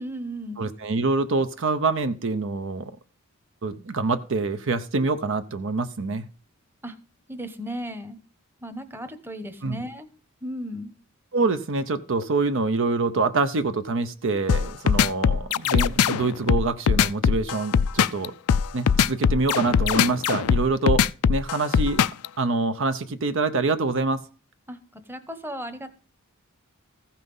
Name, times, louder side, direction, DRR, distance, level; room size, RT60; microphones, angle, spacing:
voice 1, 0.0-0.7 6.8-7.0 7.3-8.2 8.6-10.1 10.4-10.9 24.7-25.9, equal, 10° right, 9 dB, 1.0 m, -35 dB
voice 2, 0.6-2.9 3.6-6.2 9.6-9.8 11.3-18.3 18.7-21.0 21.3-22.0 22.4-24.2, right 3 dB, 60° right, 10 dB, 0.7 m, -25 dB
sound 1, 14.5-22.3, left 7 dB, 90° left, 0.4 m, -20 dB
15.0 x 5.8 x 5.4 m, 0.38 s
head